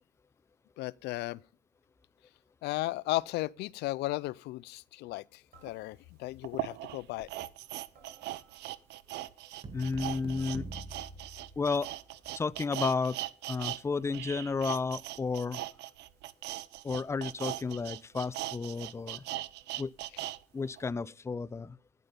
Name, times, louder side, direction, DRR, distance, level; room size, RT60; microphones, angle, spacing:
voice 1, 0.8-1.4 2.6-7.3, left 19 dB, 80° left, 0.5 m, -35 dB
sound 1, 1.3-1.6 3.1-3.9 5.5-6.3 7.9-8.9 10.4-10.9, right 5 dB, 65° right, 5.9 m, -64 dB
sound 2, 5.7-5.8 6.4-13.8 14.1-20.4 20.8-20.9, right 15 dB, 85° right, 0.8 m, -39 dB
sound 3, 9.6-12.1, right 2 dB, 30° right, 2.1 m, -45 dB
voice 2, 9.7-10.7 11.6-11.9 12.4-13.2 13.5-15.6 16.8-19.2 19.8-19.9 20.5-21.8, left 4 dB, 15° left, 0.5 m, -32 dB
12.0 x 10.5 x 5.2 m
cardioid pair, 110°, 17 cm